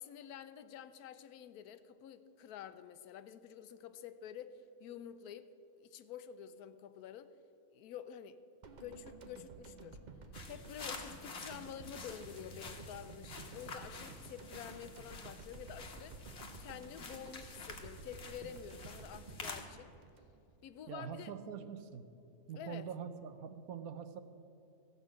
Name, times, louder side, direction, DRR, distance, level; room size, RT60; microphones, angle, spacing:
voice 1, 0.0-7.3 7.7-8.4 8.8-10.0 10.5-16.2 16.6-19.9 20.6-21.3 22.6-22.9, left 9 dB, 80° left, 12 dB, 1.1 m, -49 dB
sound 1, 8.6-20.8 21.1-21.3, right 3 dB, 40° right, 0.6 m, -52 dB
sound 2, 10.3-19.6, left 4 dB, 50° left, 1.3 m, -49 dB
voice 2, 20.9-22.0 22.5-24.2, right 7 dB, 70° right, 10 dB, 1.1 m, -44 dB
15.0 x 5.4 x 7.5 m, 2.8 s
omnidirectional pair, 1.6 m